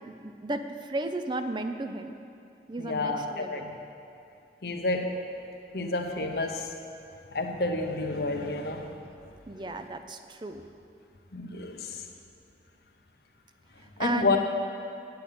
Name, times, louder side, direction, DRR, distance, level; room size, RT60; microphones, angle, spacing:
voice 1, 0.0-2.1 2.7-3.6 9.5-10.6 14.0-14.4, right 2 dB, 25° right, 8 dB, 0.5 m, -34 dB
voice 2, 2.8-3.7 4.6-5.2 5.7-6.7 7.3-9.0 11.3-12.0 14.0-14.4, left 2 dB, 60° left, 3 dB, 0.9 m, -30 dB
9.2 x 6.9 x 8.5 m, 2.6 s
head